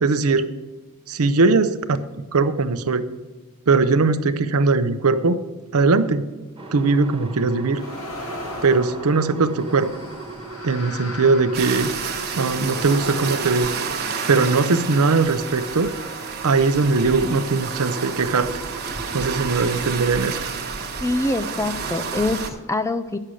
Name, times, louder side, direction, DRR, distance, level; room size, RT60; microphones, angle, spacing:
voice 1, 0.0-0.5 1.1-1.8 2.3-3.0 3.7-5.4 5.7-6.3 6.7-7.8 8.6-9.9 10.6-11.9 12.4-13.7 14.3-15.9 16.4-18.5 19.1-20.4, right 4 dB, 80° right, 12 dB, 0.7 m, -20 dB
sound 1, 6.6-19.8, right 3 dB, 25° right, 1.3 m, -38 dB
sound 2, 7.7-14.5 15.2-17.0, left 1 dB, 75° left, 1.9 m, -38 dB
sound 3, 11.5-22.5, right 5 dB, 45° right, 1.2 m, -30 dB
voice 2, 21.0-23.2, left 2 dB, 15° left, 10 dB, 0.3 m, -24 dB
9.9 x 6.6 x 6.2 m, 1.3 s
head